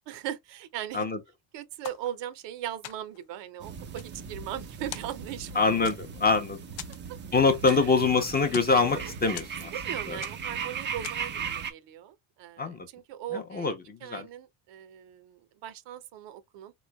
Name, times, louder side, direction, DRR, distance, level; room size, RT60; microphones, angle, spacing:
voice 1, 0.1-1.1 1.5-5.9 7.6-7.9 9.7-13.7 14.0-16.7, right 11 dB, 65° right, 0.7 m, -39 dB
sound 1, 1.8-2.5 2.8-3.3 3.8-4.6 4.9-5.5 5.9-6.3 6.8-8.1 8.3-8.8 9.4-9.9 10.2-10.6 11.0-11.4, left 12 dB, 70° left, 0.7 m, -43 dB
sound 2, 3.6-11.7, right 6 dB, 25° right, 0.4 m, -38 dB
voice 2, 5.5-6.6 7.3-9.7 10.1-10.2 12.6-12.9 13.3-14.3, left 4 dB, 20° left, 0.6 m, -25 dB
3.7 x 3.1 x 2.2 m
cardioid pair, 125°, 47 cm